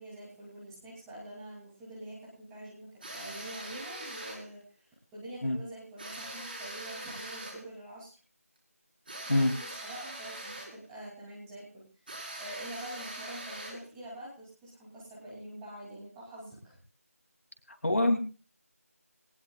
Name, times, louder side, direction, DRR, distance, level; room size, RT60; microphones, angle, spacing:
voice 1, 0.0-8.1 9.3-12.1 12.4-16.8, right 1 dB, 5° right, -6 dB, 2.7 m, -46 dB
sound 1, 3.0-4.5 6.0-7.7 9.1-10.8 12.1-13.9, right 1 dB, 35° right, 4.7 m, -42 dB
voice 2, 17.7-18.2, left 1 dB, 65° left, 5 dB, 2.9 m, -25 dB
19.5 x 19.0 x 2.4 m, 0.37 s
figure-of-eight pair, 175°, 8 cm